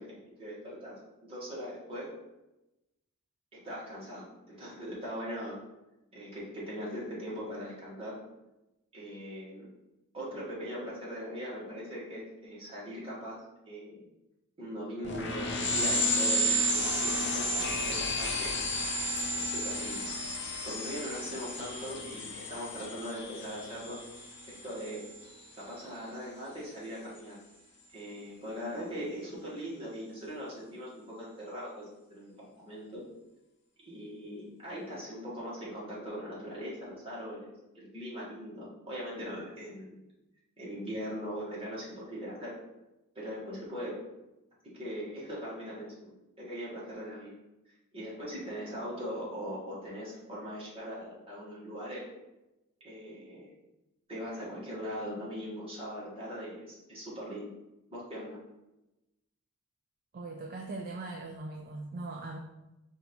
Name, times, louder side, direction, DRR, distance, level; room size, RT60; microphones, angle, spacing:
voice 1, 0.0-2.1 3.5-5.6 6.1-8.1 8.9-9.7 10.1-13.4 13.6-14.0 14.6-18.5 19.3-20.1 20.6-24.0 24.4-25.0 25.6-27.4 27.9-33.0 33.9-40.0 40.6-42.5 43.1-44.0 44.7-47.3 47.9-52.0 52.8-53.5 54.1-57.5 57.9-58.4, equal, 25° right, -7 dB, 1.6 m, -40 dB
sound 1, 15.0-25.2, equal, 50° left, 0.6 m, -32 dB
voice 2, 60.1-62.4, right 2 dB, 40° right, 1 dB, 0.4 m, -40 dB
4.6 x 2.7 x 4.3 m, 0.96 s
head